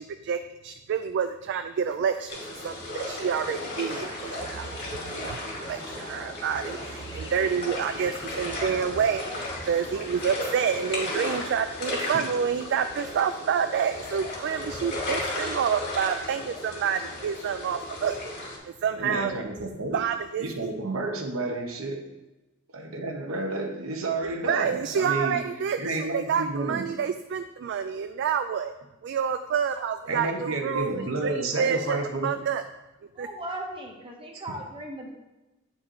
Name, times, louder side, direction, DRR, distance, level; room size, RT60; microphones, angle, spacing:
voice 1, 0.0-2.4 2.6-4.7 5.1-19.4 19.9-20.7 24.2-28.7 29.0-32.0 32.2-32.6 33.2-33.3, right 7 dB, 60° right, 9 dB, 0.3 m, -28 dB
sound 1, 2.3-18.6, left 1 dB, 55° left, 2.3 m, -35 dB
sound 2, 3.4-11.5, equal, 20° left, 0.9 m, -44 dB
voice 2, 18.9-20.0 20.3-22.0 22.7-25.4 25.8-26.8 30.1-32.3, right 2 dB, 85° right, 3 dB, 1.0 m, -31 dB
voice 3, 33.1-35.1, right 1 dB, 25° right, 1 dB, 1.1 m, -37 dB
8.4 x 4.3 x 3.8 m, 1.0 s
head